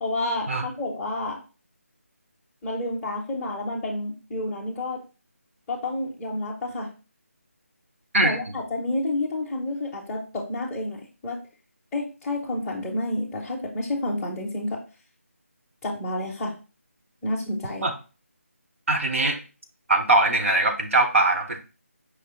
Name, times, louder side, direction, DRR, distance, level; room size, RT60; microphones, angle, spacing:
voice 1, 0.0-1.4 2.6-5.0 5.7-6.9 8.2-11.4 11.9-14.8 15.8-16.5 17.2-17.9, left 2 dB, 5° left, -5 dB, 0.6 m, -29 dB
voice 2, 8.1-8.5 17.8-17.9 18.9-19.4 19.9-21.6, right 2 dB, 60° right, 4 dB, 0.9 m, -21 dB
5.0 x 3.0 x 3.0 m, 0.32 s
figure-of-eight pair, 165°, 8 cm